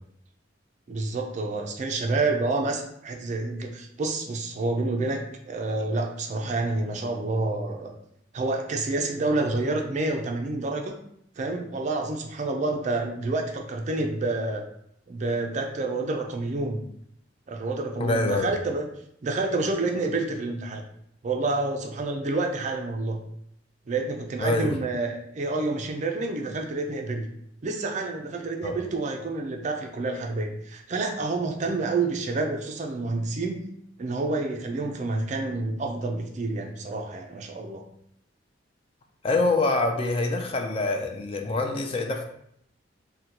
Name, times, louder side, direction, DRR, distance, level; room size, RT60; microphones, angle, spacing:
voice 1, 0.9-5.2 5.5-7.9 8.3-11.0 11.4-14.6 15.1-16.8 17.5-18.8 19.2-20.8 21.2-23.2 23.9-27.3 27.6-33.6 34.0-37.8, right 3 dB, 40° right, 3 dB, 0.4 m, -28 dB
voice 2, 18.0-18.5 24.4-24.7 28.6-28.8 39.2-42.2, left 2 dB, 30° left, 3 dB, 0.3 m, -25 dB
3.8 x 2.2 x 2.8 m, 0.70 s
head